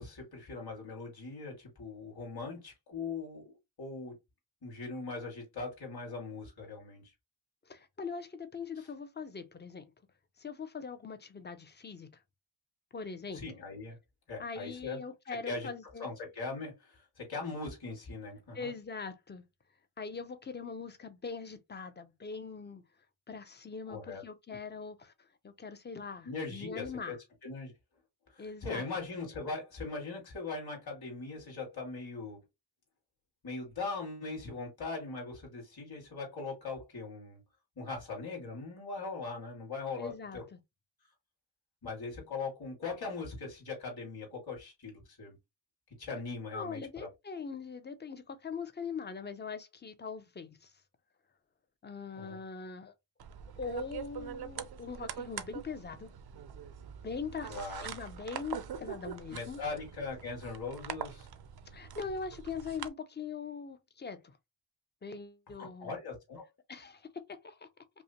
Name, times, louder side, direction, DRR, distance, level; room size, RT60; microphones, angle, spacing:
voice 1, 0.0-3.5 3.8-4.1 4.6-7.0 8.8-8.9 13.3-14.0 14.3-15.0 15.5-15.7 16.0-18.7 23.9-24.2 26.2-27.2 27.4-27.7 28.3-32.4 33.4-37.4 37.8-40.4 41.8-45.4 46.0-47.1 52.1-52.4 57.5-57.9 59.3-61.3 65.6-66.4, left 3 dB, 50° left, 2.4 m, -40 dB
voice 2, 7.7-9.8 10.4-12.2 12.9-13.4 14.4-16.1 18.5-19.4 20.0-22.8 23.3-27.2 28.4-28.8 40.0-40.6 46.5-50.7 51.8-52.9 53.6-56.1 57.0-59.6 61.7-64.3 65.0-65.9 66.7-67.7, left 5 dB, 25° left, 0.5 m, -42 dB
sound 1, 53.2-62.9, right 8 dB, 55° right, 0.6 m, -44 dB
5.4 x 2.1 x 2.9 m
wide cardioid pair, 175°, 46 cm